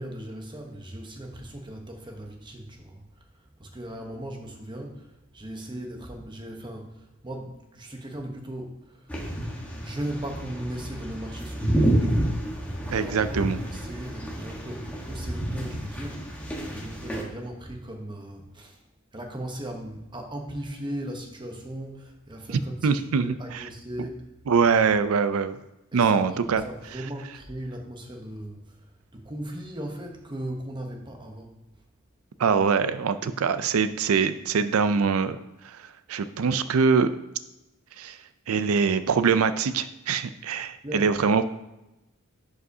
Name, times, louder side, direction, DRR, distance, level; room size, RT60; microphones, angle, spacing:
voice 1, 0.0-9.2 9.6-12.5 12.8-18.9 19.1-24.3 25.9-28.9 29.1-31.6 40.8-41.2, right 1 dB, 20° right, 3 dB, 0.9 m, -38 dB
sound 1, 9.1-17.2, right 1 dB, 5° left, 1.2 m, -29 dB
voice 2, 12.9-13.6 22.8-23.6 24.5-25.6 25.9-26.6 32.4-35.4 35.6-35.8 36.1-37.1 38.0-38.2 38.5-41.4, right 5 dB, 80° right, 12 dB, 0.4 m, -23 dB
11.0 x 4.9 x 2.7 m, 0.97 s
head